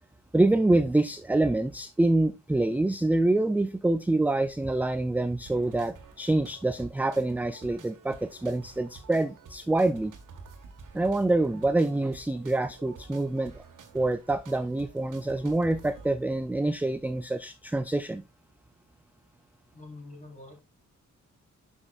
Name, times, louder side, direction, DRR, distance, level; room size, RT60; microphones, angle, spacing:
voice 1, 0.3-10.1 10.9-13.6 13.9-18.2, right 2 dB, 5° right, 0.3 m, -26 dB
sound 1, 5.5-16.1, right 4 dB, 80° right, 1.6 m, -50 dB
voice 2, 19.7-20.6, left 2 dB, 20° left, 4.0 m, -46 dB
11.0 x 5.3 x 2.4 m
wide cardioid pair, 115°, 31 cm